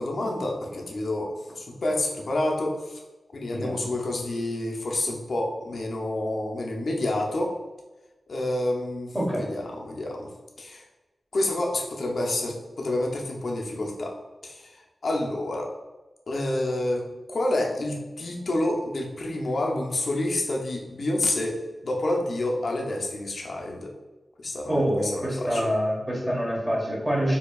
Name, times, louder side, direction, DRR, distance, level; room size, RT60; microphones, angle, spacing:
voice 1, 0.0-3.0 3.3-7.5 8.3-10.3 10.6-10.8 11.3-14.1 14.4-14.7 15.0-15.7 16.3-23.9 24.4-25.7, left 1 dB, 65° left, 0 dB, 0.6 m, -28 dB
voice 2, 9.1-9.5 24.7-27.4, equal, 15° right, -5 dB, 1.4 m, -26 dB
4.5 x 2.7 x 2.3 m, 1.1 s
wide cardioid pair, 95°, 0 cm